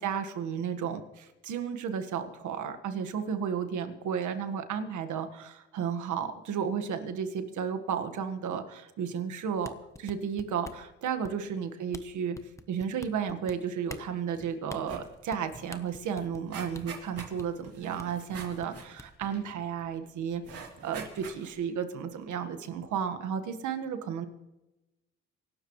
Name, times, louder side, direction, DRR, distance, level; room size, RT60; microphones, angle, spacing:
voice 1, 0.0-9.7 10.0-24.3, right 7 dB, 75° right, 8 dB, 1.7 m, -33 dB
sound 1, 9.6-10.9 11.2-11.6 11.9-12.0 12.3-13.5 13.9-14.1 14.7-14.8 15.3-15.4 15.7-16.5 16.7-16.8 17.2-17.5 18.0-18.1 18.3-19.3, left 2 dB, 10° left, 1.0 m, -45 dB
sound 2, 14.3-14.5 14.8-15.1 15.5-15.6 15.9-19.8 20.4-21.7 22.2-22.3, right 5 dB, 50° right, 3.0 m, -45 dB
24.0 x 12.0 x 3.2 m, 1.0 s
cardioid pair, 90°, 30 cm